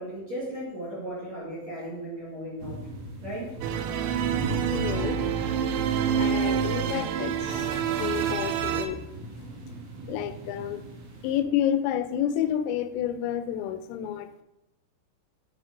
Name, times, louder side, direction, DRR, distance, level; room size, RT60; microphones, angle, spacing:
voice 1, 0.0-2.9 3.2-3.6, right 1 dB, 50° right, -6 dB, 2.1 m, -36 dB
sound 1, 2.6-11.4, right 2 dB, 70° right, 2.5 m, -39 dB
sound 2, 3.6-8.9, right 8 dB, 90° right, 2.5 m, -27 dB
voice 2, 4.7-5.2 6.2-7.7 8.0-9.0 10.1-10.8 11.2-14.4, left 10 dB, 90° left, 10 dB, 3.2 m, -29 dB
sound 3, 6.2-8.5 9.2-9.5, left 1 dB, 30° left, 3.2 m, -47 dB
10.0 x 5.0 x 3.6 m, 0.90 s
omnidirectional pair, 5.8 m